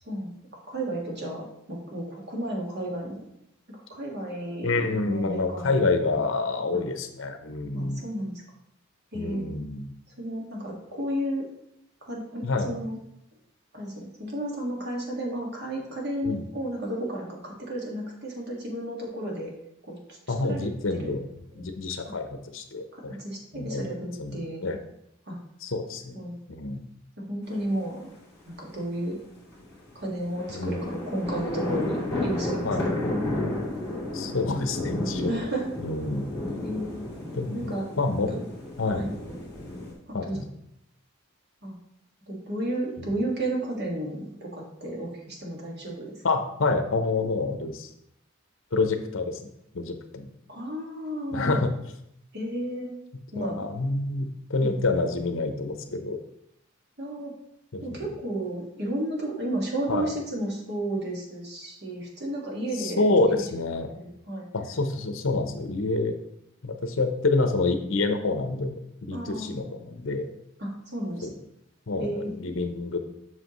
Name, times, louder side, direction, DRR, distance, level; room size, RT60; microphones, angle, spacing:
voice 1, 0.1-3.2 3.7-5.9 6.7-6.8 7.7-8.4 9.1-9.5 10.2-11.5 12.0-13.0 13.7-19.5 19.9-20.0 20.5-20.7 21.0-21.1 21.5-21.7 22.1-22.2 22.9-24.6 25.3-25.4 26.1-26.4 27.2-28.1 28.5-29.2 30.0-32.7 35.3-35.7 36.6-36.9 37.5-37.9 38.9-39.1 40.1-40.4 41.6-41.8 42.3-46.2 50.5-51.6 52.3-52.9 53.3-53.7 54.6-54.8 57.0-57.3 57.8-63.7 64.0-64.4 69.1-69.5 70.6-71.3 72.0-72.3, right 1 dB, 50° right, -1 dB, 1.8 m, -32 dB
voice 2, 4.6-8.1 9.1-9.9 12.4-12.7 16.2-16.5 20.3-21.2 21.5-23.2 23.5-23.9 24.2-24.8 25.6-26.2 26.5-26.8 30.5-30.8 32.6-32.9 34.1-35.4 35.8-36.3 37.3-38.3 38.8-39.1 40.1-40.5 46.2-47.9 48.7-49.4 49.7-50.3 51.3-51.7 53.4-56.2 57.7-58.1 59.9-60.1 62.8-63.9 64.5-66.2 66.6-70.3 71.2-71.3 71.9-73.0, left 3 dB, 65° left, 7 dB, 0.8 m, -27 dB
sound 1, 27.5-27.6 29.5-39.9, left 1 dB, 10° left, 2.5 m, -32 dB
7.7 x 6.0 x 3.1 m, 0.78 s
head